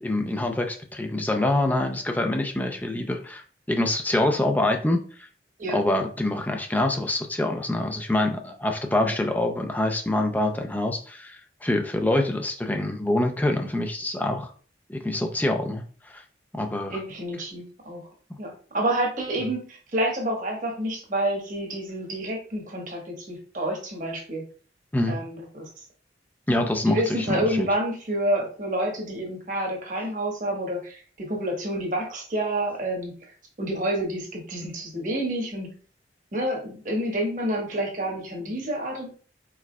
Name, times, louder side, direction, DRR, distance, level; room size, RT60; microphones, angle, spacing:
voice 1, 0.0-3.4 3.7-5.3 5.7-14.5 14.9-16.2 16.5-17.0 24.9-25.2 26.5-27.7, left 1 dB, 10° left, 4 dB, 0.4 m, -25 dB
voice 2, 16.9-18.1 18.4-24.4 25.1-25.7 26.8-35.7 36.3-39.1, right 1 dB, 45° right, 0 dB, 1.2 m, -29 dB
4.7 x 4.5 x 2.2 m, 0.41 s
head